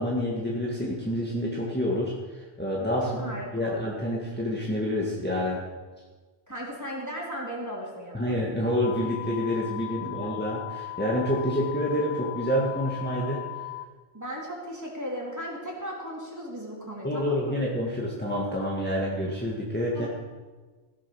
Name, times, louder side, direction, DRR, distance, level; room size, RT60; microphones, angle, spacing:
voice 1, 0.0-5.6 8.1-13.4 17.0-20.1, equal, 10° left, -5 dB, 1.9 m, -28 dB
voice 2, 3.2-3.9 6.5-8.3 10.2-10.3 14.1-17.6 19.9-20.1, equal, 15° right, -4 dB, 3.4 m, -36 dB
sound 1, 8.8-13.8, left 22 dB, 40° left, 0.6 m, -37 dB
16.0 x 8.9 x 6.4 m, 1.3 s
omnidirectional pair, 1.1 m